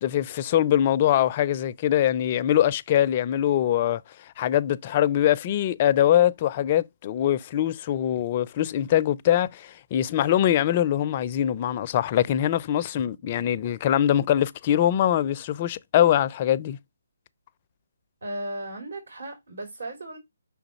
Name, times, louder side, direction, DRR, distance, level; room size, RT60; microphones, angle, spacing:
voice 1, 0.0-16.8, left 11 dB, 35° left, 0.4 m, -23 dB
voice 2, 18.2-20.2, right 1 dB, 75° right, 3.0 m, -35 dB
5.8 x 3.9 x 4.1 m
figure-of-eight pair, 150°, 0 cm